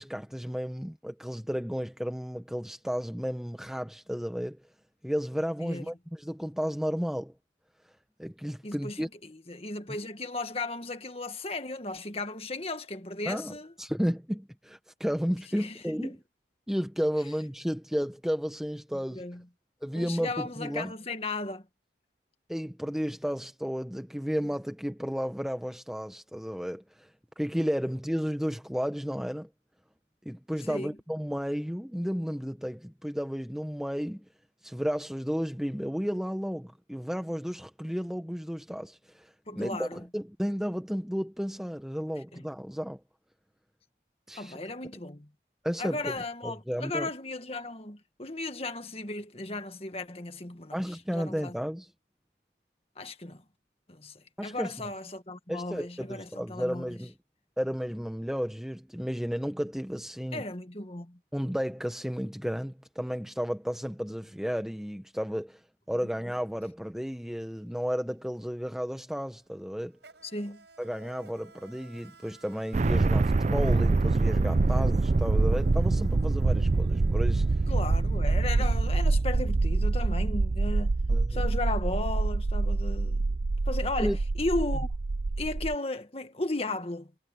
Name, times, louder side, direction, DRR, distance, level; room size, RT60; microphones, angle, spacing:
voice 1, 0.0-4.6 5.0-7.3 8.2-9.1 13.3-16.1 16.7-19.2 19.8-20.9 22.5-27.1 27.4-29.5 30.2-34.2 34.6-43.0 44.3-44.6 45.6-46.2 46.4-47.1 50.7-51.9 54.4-54.7 55.5-57.1 57.6-60.4 61.3-65.6 65.9-70.0 70.8-77.5 81.1-81.4 84.0-84.2, equal, ahead, 0.8 m, -33 dB
voice 2, 8.6-13.7 15.5-16.2 19.1-19.4 20.0-21.6 30.7-30.9 39.5-40.0 42.3-42.5 44.4-45.3 45.8-50.8 51.1-51.6 53.0-53.4 53.9-56.9 60.3-61.2 70.2-70.6 77.7-80.9 81.3-83.3 83.7-84.9 85.4-87.1, left 2 dB, 35° left, 1.8 m, -35 dB
Insect, 67.3-67.5 67.8-78.8, right 4 dB, 75° right, 5.5 m, -57 dB
sound 1, 72.7-85.8, right 3 dB, 40° right, 0.4 m, -25 dB
head